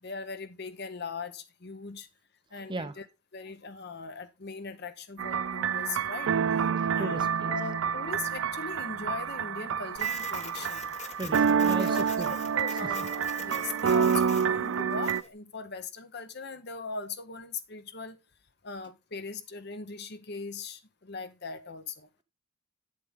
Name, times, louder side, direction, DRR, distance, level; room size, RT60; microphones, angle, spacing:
voice 1, 0.0-2.1 2.5-3.0 3.3-6.3 6.9-10.9 11.8-12.0 12.3-18.2 18.6-22.1, left 4 dB, 55° left, 1.0 m, -40 dB
voice 2, 2.5-3.0 6.8-7.6 11.2-12.3, right 2 dB, 25° right, 0.7 m, -37 dB
sound 1, 5.2-15.2, right 7 dB, 80° right, 0.4 m, -28 dB
Printer, 10.0-15.3, left 6 dB, 35° left, 1.0 m, -44 dB
8.6 x 7.7 x 3.6 m
head